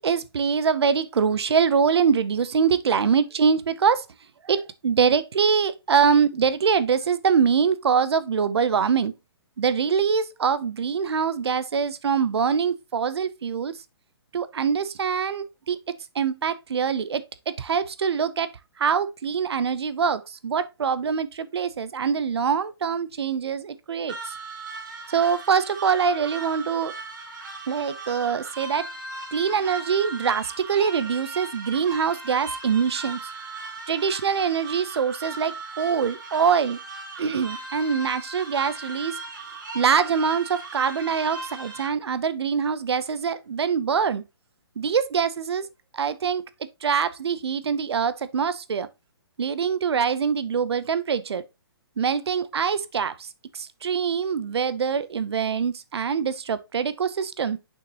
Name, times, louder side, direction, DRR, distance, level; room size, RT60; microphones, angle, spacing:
voice 1, 0.0-4.0 4.4-9.1 9.6-13.8 14.3-15.8 16.1-18.5 18.8-24.3 25.1-26.9 27.7-28.9 29.3-33.2 33.9-36.8 37.2-39.2 39.7-44.2 44.8-45.7 45.9-46.4 46.8-48.9 49.4-51.4 52.0-53.3 53.5-57.6, right 6 dB, 75° right, 0.8 m, -24 dB
sound 1, 24.1-41.9, right 3 dB, 50° right, 2.2 m, -38 dB
6.9 x 5.8 x 3.0 m
hypercardioid pair, 170°, 14 cm